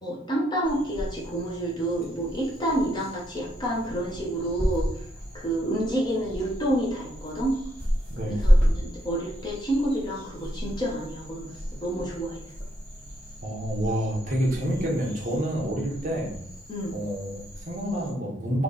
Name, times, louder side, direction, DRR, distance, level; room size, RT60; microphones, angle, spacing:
voice 1, 0.0-4.9 5.3-7.5 8.3-11.5 11.8-12.4 16.7-17.0, right 1 dB, 20° left, -4 dB, 1.0 m, -29 dB
sound 1, 0.6-18.1, equal, 5° left, 1.6 m, -31 dB
voice 2, 8.1-8.5 13.4-16.4 16.9-18.6, equal, 40° right, -2 dB, 1.0 m, -28 dB
3.3 x 3.3 x 4.0 m, 0.66 s
head